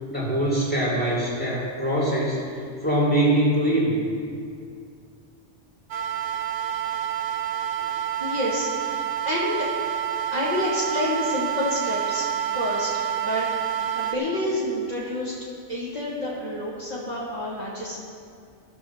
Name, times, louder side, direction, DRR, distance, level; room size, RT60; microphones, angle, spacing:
voice 1, 0.1-2.4 2.8-4.1, right 1 dB, 5° left, -6 dB, 2.8 m, -23 dB
sound 1, 5.9-14.2, right 10 dB, 80° right, 1.1 m, -28 dB
voice 2, 8.2-8.7 9.2-9.7 10.3-12.9 13.2-13.5 13.9-15.3 15.7-18.0, left 1 dB, 35° right, -7 dB, 2.1 m, -28 dB
15.0 x 5.6 x 7.2 m, 2.3 s
omnidirectional pair, 1.3 m